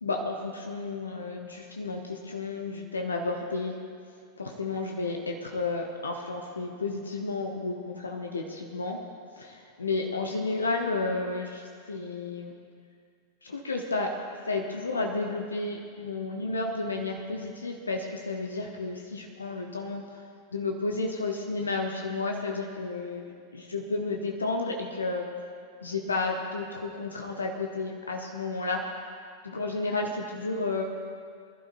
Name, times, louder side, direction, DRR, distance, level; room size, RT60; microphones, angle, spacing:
voice 1, 0.0-3.7 4.4-9.0 9.4-12.5 13.4-14.1 14.5-20.0 20.5-25.3 25.8-28.8 29.4-30.8, left 3 dB, 75° left, 2 dB, 0.9 m, -32 dB
22.5 x 11.5 x 2.7 m, 2.2 s
figure-of-eight pair, 90°, 0 cm